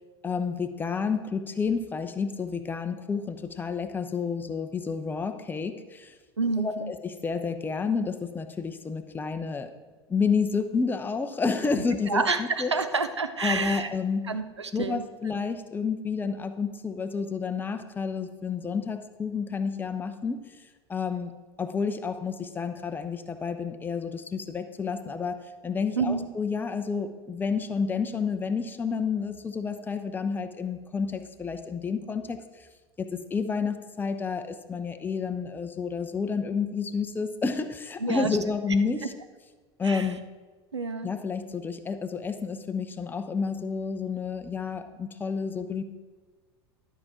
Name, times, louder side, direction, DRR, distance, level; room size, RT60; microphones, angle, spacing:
voice 1, 0.2-6.1 6.6-9.7 10.1-12.7 13.4-14.2 14.7-20.4 20.9-32.4 33.0-39.0 39.8-40.2 41.0-45.8, left 5 dB, 15° left, 8 dB, 0.7 m, -30 dB
voice 2, 6.4-6.9 12.1-13.9 14.3-15.0 26.0-26.3 38.0-38.4 39.8-40.1 40.7-41.1, right 4 dB, 80° right, 10 dB, 0.7 m, -28 dB
12.0 x 5.0 x 5.9 m, 1.3 s
figure-of-eight pair, 80°, 14 cm